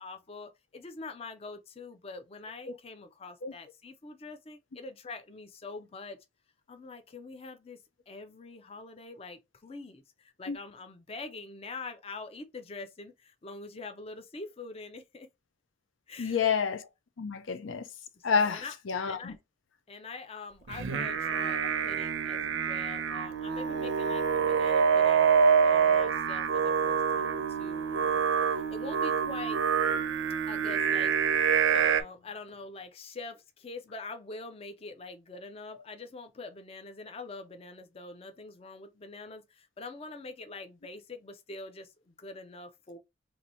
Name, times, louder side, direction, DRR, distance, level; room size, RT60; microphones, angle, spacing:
voice 1, 0.0-6.2 6.7-7.8 8.1-15.3 16.1-16.5 18.2-18.7 19.1-19.3 19.9-25.3 25.6-29.6 30.5-31.2 31.7-43.0, left 3 dB, 30° left, 0.4 m, -44 dB
voice 2, 16.2-16.8 17.2-17.9 18.2-19.3, left 6 dB, 85° left, 0.6 m, -29 dB
Singing, 20.7-32.0, right 6 dB, 85° right, 0.5 m, -26 dB
2.8 x 2.6 x 4.1 m
head